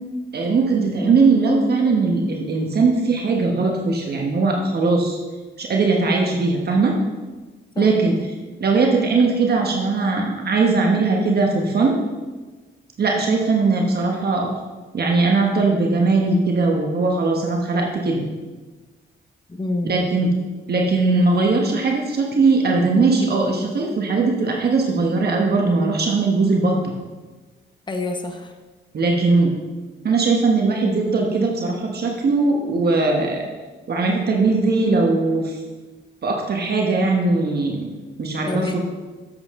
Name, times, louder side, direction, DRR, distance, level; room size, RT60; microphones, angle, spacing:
voice 1, 0.3-5.2 5.6-6.9 7.8-8.1 8.6-12.0 13.0-14.5 14.9-18.2 19.9-20.3 20.7-26.9 28.9-29.5 30.0-33.4 33.9-35.6 36.2-37.9 38.2-38.8, right 3 dB, 55° right, 0 dB, 1.3 m, -19 dB
voice 2, 19.5-19.9 27.9-28.5 38.4-38.8, left 2 dB, 25° left, 5 dB, 1.1 m, -27 dB
10.0 x 7.7 x 3.7 m, 1.3 s
cardioid pair, 80°, 19 cm